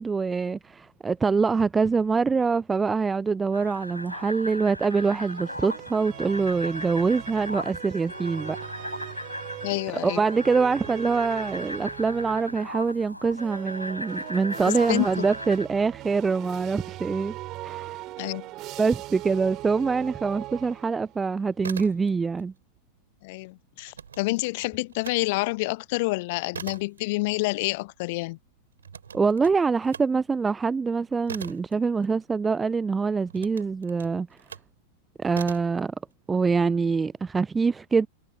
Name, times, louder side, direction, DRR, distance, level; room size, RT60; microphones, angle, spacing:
voice 1, 0.0-8.6 10.0-17.3 17.6-18.0 18.8-22.5 29.1-34.3 35.2-35.9 36.3-38.1, right 4 dB, 15° right, 0.5 m, -25 dB
sound 1, 3.5-15.7, left 1 dB, 90° left, 4.9 m, -37 dB
sound 2, 4.9-12.7 13.3-21.2, right 17 dB, 35° right, 5.9 m, -41 dB
voice 2, 9.6-10.2 14.7-15.3 18.2-18.5 23.2-28.4, left 23 dB, 50° left, 0.6 m, -28 dB
sound 3, 21.4-22.4 22.7-25.2 25.6-32.6 33.3-34.8 35.3-35.8, right 7 dB, 70° right, 2.6 m, -42 dB
figure-of-eight pair, 90°, 0 cm